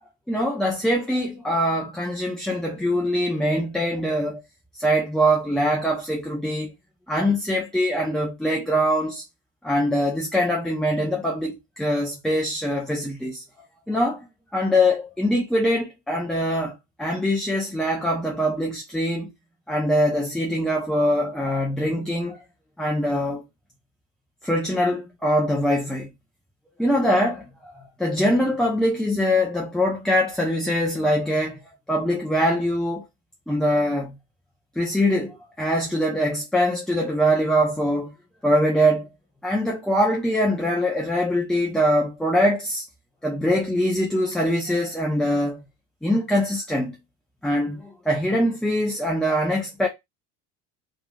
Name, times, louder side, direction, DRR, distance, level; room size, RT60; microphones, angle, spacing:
voice 1, 0.3-4.4 4.8-6.7 7.1-9.2 9.6-13.4 13.9-14.2 14.5-19.3 19.7-22.4 22.8-23.4 24.4-26.1 26.8-31.6 31.9-33.0 33.5-34.1 34.8-38.1 38.4-39.1 39.4-42.8 43.2-45.6 46.0-47.0 47.4-49.9, equal, ahead, 0.5 m, -23 dB
3.0 x 2.5 x 2.2 m
supercardioid pair, 95°, 35 cm